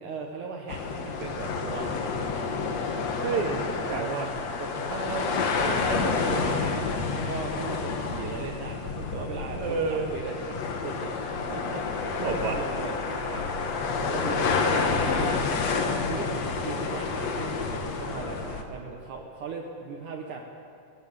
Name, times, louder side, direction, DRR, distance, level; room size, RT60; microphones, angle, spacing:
voice 1, 0.0-2.1 3.8-5.2 7.3-13.6 14.0-15.5 16.1-20.4, right 4 dB, 65° right, 1 dB, 2.5 m, -38 dB
sound 1, 0.7-18.6, left 4 dB, 55° left, 2.2 m, -29 dB
voice 2, 3.2-3.6 3.9-4.3 4.9-6.9 9.5-10.1 12.2-12.6 14.4-15.3, right 4 dB, 45° right, 1 dB, 2.5 m, -31 dB
19.0 x 17.0 x 8.2 m, 2.8 s
omnidirectional pair, 4.1 m